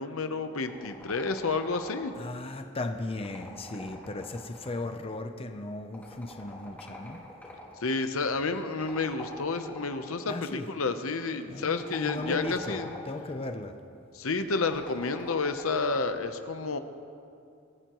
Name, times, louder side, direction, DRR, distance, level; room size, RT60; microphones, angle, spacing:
voice 1, 0.0-2.1 7.8-12.9 14.1-16.8, left 4 dB, 75° left, 8 dB, 0.8 m, -30 dB
sound 1, 0.7-2.3 3.1-5.0 5.9-7.8 8.8-10.1 11.7-13.3 14.5-15.9, left 1 dB, 10° left, 4.1 m, -45 dB
voice 2, 2.2-7.2 10.3-10.7 11.5-13.8, left 2 dB, 25° left, 7 dB, 0.6 m, -36 dB
25.0 x 14.0 x 3.1 m, 2.5 s
head